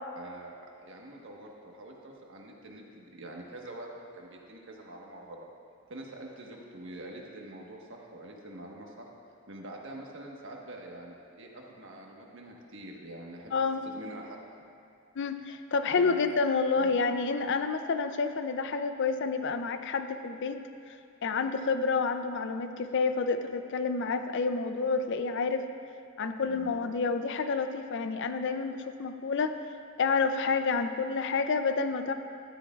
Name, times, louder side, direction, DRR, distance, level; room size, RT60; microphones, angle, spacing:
voice 1, 0.1-5.5 5.9-9.1 9.5-13.5 13.8-14.4 16.0-16.2 16.7-16.9 26.4-26.7, right 1 dB, 60° right, -1 dB, 1.4 m, -45 dB
voice 2, 13.5-13.8 15.2-20.6 21.2-25.6 26.2-29.5 30.0-32.1, left 4 dB, 55° left, 8 dB, 0.5 m, -29 dB
12.5 x 12.5 x 2.4 m, 2.4 s
head